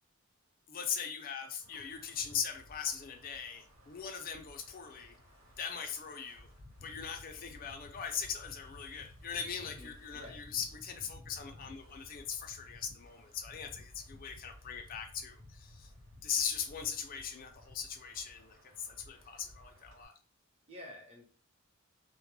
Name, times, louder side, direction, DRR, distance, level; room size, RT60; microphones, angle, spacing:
voice 1, 0.7-5.1 5.6-6.5 6.8-15.9 16.2-20.1, left 7 dB, 40° left, 0.4 m, -40 dB
Wind, 1.6-20.1, left 1 dB, 75° right, 1.1 m, -56 dB
voice 2, 9.6-10.4 20.7-21.2, left 1 dB, 30° right, 0.8 m, -50 dB
2.2 x 2.1 x 3.0 m
head